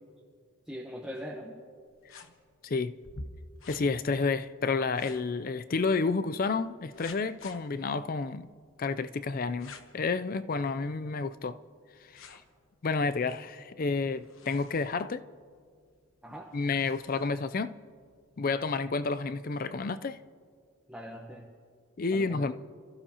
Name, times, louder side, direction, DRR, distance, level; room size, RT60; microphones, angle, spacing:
voice 1, 0.7-1.6 16.2-16.5 20.9-21.5 22.1-22.5, equal, 5° right, 1.0 m, -41 dB
sound 1, 1.9-19.6, left 2 dB, 75° left, 1.0 m, -54 dB
voice 2, 2.6-2.9 3.7-8.5 8.8-11.6 12.1-12.4 12.8-15.2 16.5-17.8 18.4-20.2 22.0-22.5, left 4 dB, 40° left, 0.4 m, -30 dB
28.5 x 14.5 x 2.9 m
head